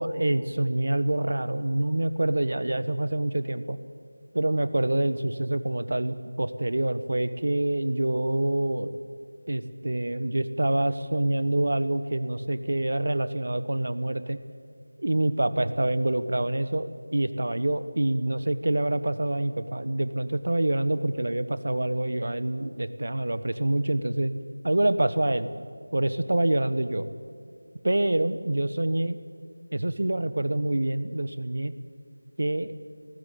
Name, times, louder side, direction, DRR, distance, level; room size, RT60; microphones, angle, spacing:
voice 1, 0.0-3.8 4.3-9.0 9.5-14.4 15.0-24.3 24.6-25.5 25.9-27.1 27.8-29.2 29.7-31.7 32.4-32.7, right 1 dB, 45° right, 13 dB, 1.2 m, -26 dB
24.0 x 19.5 x 8.6 m, 2.3 s
figure-of-eight pair, 180°, 0 cm